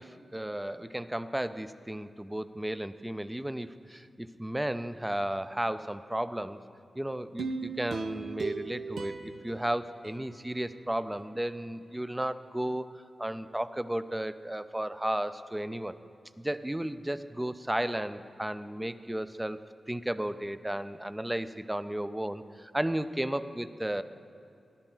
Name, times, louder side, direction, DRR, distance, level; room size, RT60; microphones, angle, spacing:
voice 1, 0.0-6.6 7.0-16.0 16.4-19.6 19.9-24.0, right 1 dB, 10° right, 13 dB, 0.4 m, -34 dB
sound 1, 7.4-10.7 11.1-11.2, right 4 dB, 90° right, 0.9 m, -38 dB
17.5 x 11.5 x 3.8 m, 2.6 s
wide cardioid pair, 115°, 0 cm